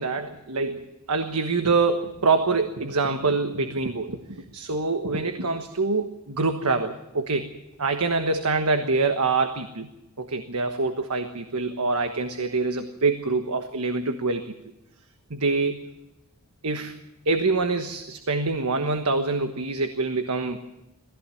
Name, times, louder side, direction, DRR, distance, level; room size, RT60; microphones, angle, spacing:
voice 1, 0.0-7.5 7.8-9.9 10.2-14.5 15.3-15.8 16.6-16.9 17.2-20.8, right 3 dB, 90° right, 7 dB, 1.3 m, -25 dB
19.5 x 15.0 x 9.2 m, 0.96 s
head